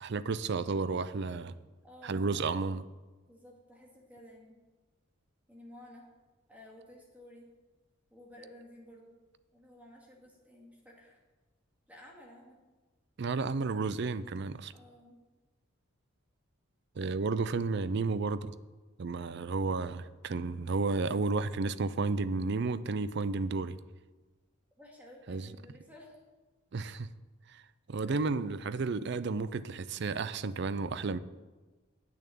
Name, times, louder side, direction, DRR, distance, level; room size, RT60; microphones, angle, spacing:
voice 1, 0.0-1.6 2.0-2.8 13.2-14.7 17.0-18.5 19.0-23.8 25.3-25.5 26.7-27.1 27.5-27.6 27.9-31.2, right 4 dB, 55° right, 0.5 m, -32 dB
voice 2, 1.8-2.3 3.3-4.6 5.5-6.1 6.5-7.5 8.1-9.1 9.5-11.2 11.9-12.6 14.7-15.2 24.8-26.2 28.0-28.5, left 1 dB, 5° right, 2.1 m, -54 dB
8.7 x 6.7 x 8.5 m
head